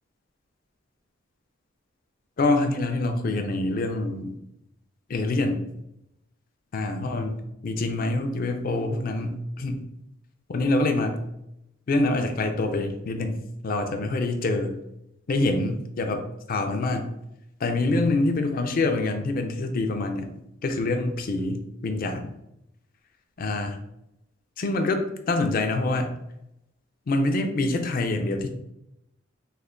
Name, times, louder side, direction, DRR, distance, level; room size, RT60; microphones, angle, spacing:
voice 1, 2.4-4.3 5.1-5.6 6.7-9.8 10.5-11.2 11.9-14.7 15.3-17.1 17.6-20.3 20.6-22.3 23.4-23.8 24.6-25.0 25.3-26.1 27.1-28.5, left 2 dB, 45° left, 6 dB, 0.4 m, -26 dB
3.3 x 2.1 x 3.6 m, 0.84 s
head